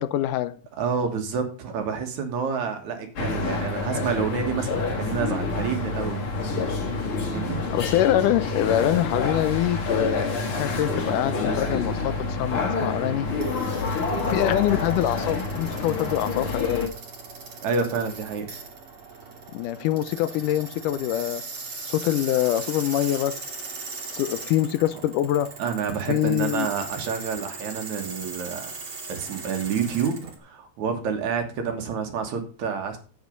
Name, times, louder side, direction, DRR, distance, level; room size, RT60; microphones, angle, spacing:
voice 1, 0.0-0.6 7.7-13.3 14.3-16.9 19.5-21.4 21.9-23.4 24.1-25.5 26.1-26.7, left 12 dB, 80° left, 2.2 m, -24 dB
voice 2, 0.8-6.3 7.3-7.6 17.6-18.5 25.6-28.7 29.1-33.0, right 6 dB, 65° right, 2.8 m, -28 dB
sound 1, 3.2-16.9, left 3 dB, 45° left, 2.5 m, -28 dB
sound 2, 11.8-30.4, right 4 dB, 45° right, 3.0 m, -39 dB
8.3 x 8.2 x 5.2 m
omnidirectional pair, 3.8 m